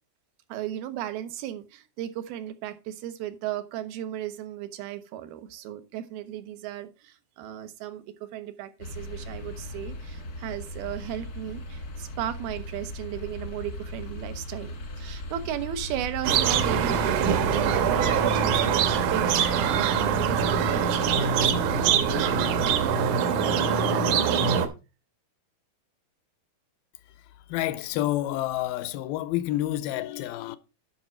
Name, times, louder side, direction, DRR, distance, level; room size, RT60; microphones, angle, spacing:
voice 1, 0.5-21.6 21.9-22.3, right 11 dB, 90° right, 2.9 m, -35 dB
sound 1, 8.8-22.9, left 1 dB, 60° left, 0.9 m, -37 dB
sound 2, 16.2-24.7, right 7 dB, 70° right, 2.2 m, -23 dB
voice 2, 27.5-30.6, left 15 dB, 90° left, 2.5 m, -29 dB
10.0 x 5.9 x 4.4 m
omnidirectional pair, 4.2 m